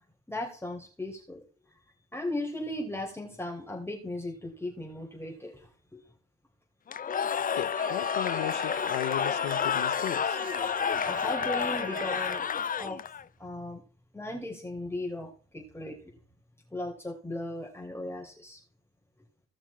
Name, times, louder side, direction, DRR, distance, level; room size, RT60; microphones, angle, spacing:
voice 1, 0.3-1.4 2.1-6.0 10.9-12.5 12.8-13.0 13.4-13.8 14.1-16.1 16.7-18.6, left 1 dB, 10° left, 3.8 m, -37 dB
Cheering / Crowd, 6.9-13.2, left 7 dB, 30° left, 0.5 m, -30 dB
voice 2, 7.5-10.4, left 13 dB, 80° left, 0.9 m, -35 dB
Trumpet, 7.8-12.4, right 4 dB, 60° right, 3.4 m, -41 dB
17.5 x 5.9 x 4.3 m
hypercardioid pair, 55°, 29 cm